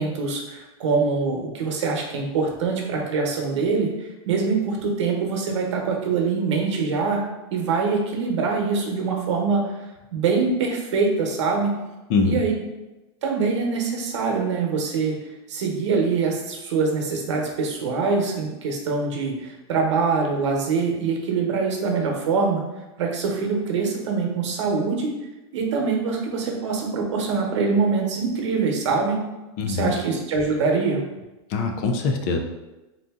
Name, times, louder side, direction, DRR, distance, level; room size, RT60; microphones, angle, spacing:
voice 1, 0.0-7.2 7.5-9.6 10.1-11.7 12.2-12.5 13.2-15.1 15.5-22.6 23.0-25.1 25.5-29.2 29.7-31.0, right 4 dB, 90° right, 1 dB, 0.9 m, -24 dB
voice 2, 12.1-12.4 29.6-29.9 31.5-32.4, left 4 dB, 35° left, 4 dB, 0.4 m, -23 dB
3.8 x 2.7 x 3.6 m, 1.1 s
supercardioid pair, 175°, 15 cm